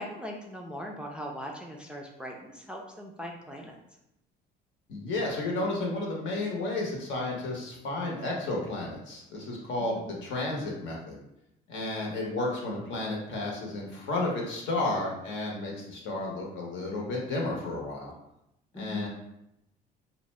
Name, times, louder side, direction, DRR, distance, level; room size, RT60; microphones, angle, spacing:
voice 1, 0.0-3.8 9.8-10.1 18.7-19.1, equal, 5° right, 0 dB, 0.4 m, -40 dB
voice 2, 4.9-11.2 11.7-18.1 18.8-19.1, left 2 dB, 65° left, -1 dB, 0.9 m, -32 dB
2.5 x 2.1 x 3.1 m, 0.83 s
supercardioid pair, 75°, 21 cm